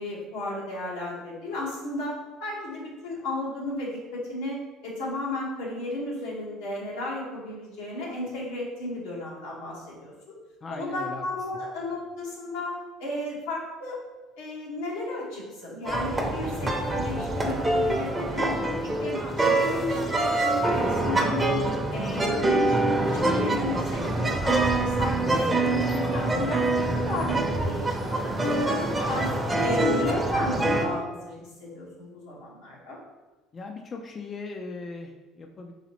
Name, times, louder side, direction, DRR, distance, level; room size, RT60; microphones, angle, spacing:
voice 1, 0.0-2.1 2.4-10.4 10.7-14.0 14.4-21.6 21.9-28.4 29.1-29.3 29.6-33.0, left 2 dB, 90° left, -4 dB, 1.4 m, -34 dB
voice 2, 10.6-11.2 33.5-35.7, left 3 dB, 35° left, 3 dB, 0.4 m, -38 dB
sound 1, 15.9-30.9, right 2 dB, 15° right, 0.7 m, -25 dB
4.0 x 3.9 x 3.0 m, 1.2 s
supercardioid pair, 95°, 0 cm